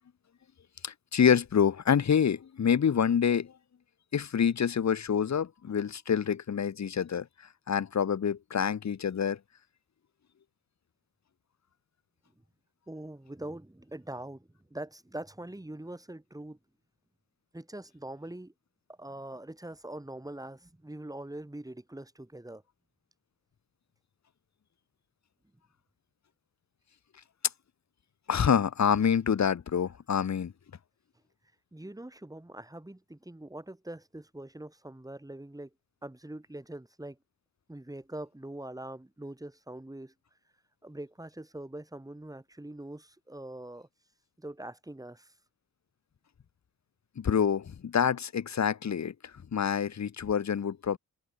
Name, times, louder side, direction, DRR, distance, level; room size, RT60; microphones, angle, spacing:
voice 1, 0.8-3.5 4.1-7.3 7.7-9.4 28.3-30.5 47.2-49.1 49.5-51.0, left 7 dB, 50° left, 1.3 m, -27 dB
voice 2, 12.9-16.6 17.5-18.5 18.9-22.6 31.7-35.7 36.0-37.2 37.7-40.1 40.8-43.9 44.4-45.3, right 1 dB, 10° right, 3.5 m, -43 dB
open air
cardioid pair, 70°, 35 cm